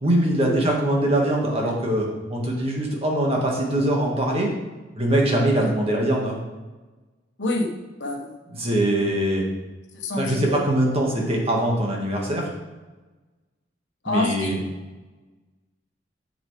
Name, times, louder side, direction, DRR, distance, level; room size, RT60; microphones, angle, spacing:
voice 1, 0.0-4.5 5.0-6.4 8.5-9.4 10.2-12.5 14.1-14.6, right 1 dB, 35° right, -1 dB, 1.8 m, -22 dB
voice 2, 7.4-7.7 8.0-8.4 9.9-10.7 14.0-14.6, left 2 dB, 70° left, 1 dB, 1.3 m, -27 dB
8.0 x 7.2 x 3.4 m, 1.2 s
head